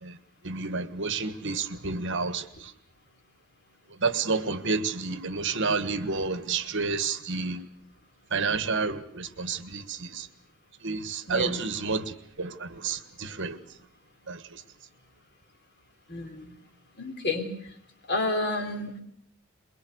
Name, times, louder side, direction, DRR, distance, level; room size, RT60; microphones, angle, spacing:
voice 1, 0.4-2.7 4.0-7.6 8.3-10.3 10.8-13.6 14.3-14.6, right 4 dB, 60° right, 1.6 m, -30 dB
voice 2, 11.3-11.6 16.1-16.5 17.0-17.5 18.1-19.0, left 2 dB, 55° left, 3.8 m, -30 dB
23.0 x 22.5 x 8.1 m
head